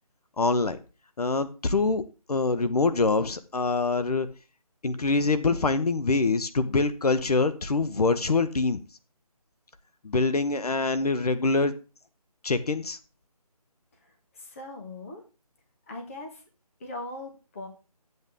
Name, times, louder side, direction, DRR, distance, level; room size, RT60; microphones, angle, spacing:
voice 1, 0.4-0.8 1.2-2.0 2.3-4.3 4.8-8.8 10.0-11.7 12.4-13.0, left 3 dB, 70° left, 11 dB, 1.0 m, -24 dB
voice 2, 13.9-15.2 15.9-16.4 16.8-17.7, left 2 dB, 20° left, 2 dB, 1.4 m, -40 dB
12.5 x 8.1 x 3.6 m, 0.32 s
figure-of-eight pair, 170°, 20 cm